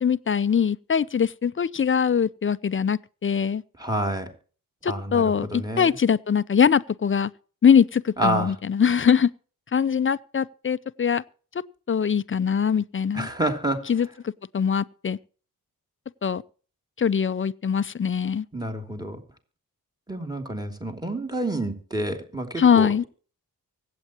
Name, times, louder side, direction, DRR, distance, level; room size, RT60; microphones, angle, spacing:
voice 1, 0.0-3.6 4.8-7.3 7.6-9.3 9.7-11.2 11.9-13.3 13.9-15.2 16.2-16.4 17.0-18.5 22.6-23.0, left 7 dB, 35° left, 0.6 m, -22 dB
voice 2, 3.8-4.3 4.8-6.0 8.2-8.5 13.1-13.8 18.5-19.2 20.1-23.1, right 1 dB, 10° right, 3.0 m, -28 dB
24.5 x 8.5 x 3.0 m
cardioid pair, 85°, 35 cm